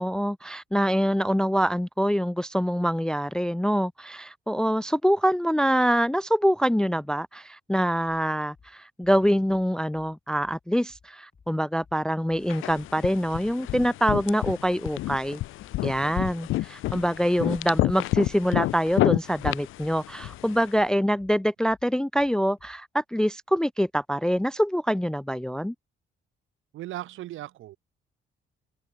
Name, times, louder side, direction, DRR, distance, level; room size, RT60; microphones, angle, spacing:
voice 1, 0.0-15.4 15.8-25.7, equal, 5° left, 0.4 m, -25 dB
sound 1, 8.5-22.8, left 5 dB, 35° left, 4.7 m, -58 dB
sound 2, 12.5-20.7, left 17 dB, 90° left, 1.1 m, -30 dB
voice 2, 26.7-27.8, right 15 dB, 85° right, 1.7 m, -37 dB
open air
cardioid pair, 90°, 20 cm